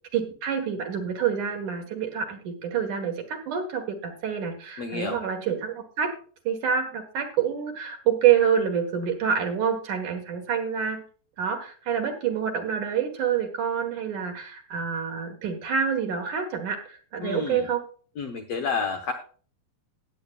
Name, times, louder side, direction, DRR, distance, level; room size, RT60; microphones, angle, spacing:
voice 1, 0.1-6.1 6.4-11.0 11.4-17.8, right 8 dB, 60° right, 4 dB, 2.7 m, -27 dB
voice 2, 4.8-5.2 17.2-17.7 18.2-19.1, left 5 dB, 75° left, 4 dB, 1.5 m, -30 dB
18.0 x 8.5 x 2.4 m, 0.41 s
omnidirectional pair, 4.5 m